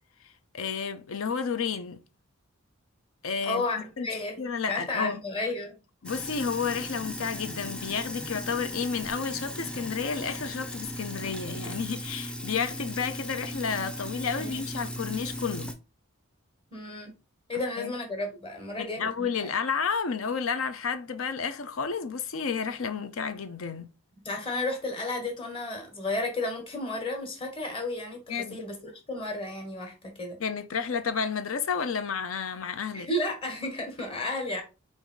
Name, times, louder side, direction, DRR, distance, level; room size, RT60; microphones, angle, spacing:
voice 1, 0.5-2.0 3.2-3.6 4.0-4.1 4.4-5.2 6.0-15.7 17.8-17.9 18.8-23.9 28.3-28.6 30.4-33.1, left 6 dB, 70° left, 0.6 m, -31 dB
voice 2, 3.4-4.4 4.7-5.8 14.4-14.6 16.7-17.2 17.5-19.5 24.2-28.8 29.1-30.4 32.9-34.6, left 2 dB, 25° left, 1.3 m, -32 dB
Sink (filling or washing), 6.0-15.7, equal, 5° left, 0.4 m, -37 dB
4.7 x 2.6 x 3.8 m
head